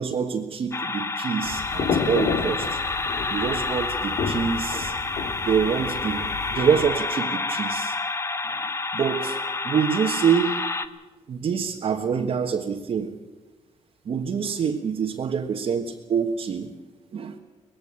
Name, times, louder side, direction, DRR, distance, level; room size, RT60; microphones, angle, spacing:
voice 1, 0.0-2.8 3.3-4.9 5.4-8.0 8.5-9.4 9.6-10.6 11.3-13.1 14.0-16.7 17.1-17.4, right 7 dB, 45° right, 0 dB, 1.5 m, -26 dB
sound 1, 0.7-10.9, left 3 dB, 20° left, 1.0 m, -29 dB
sound 2, 1.4-6.9, left 5 dB, 60° left, 2.1 m, -31 dB
20.0 x 15.5 x 9.7 m, 1.2 s
cardioid pair, 125°, 13 cm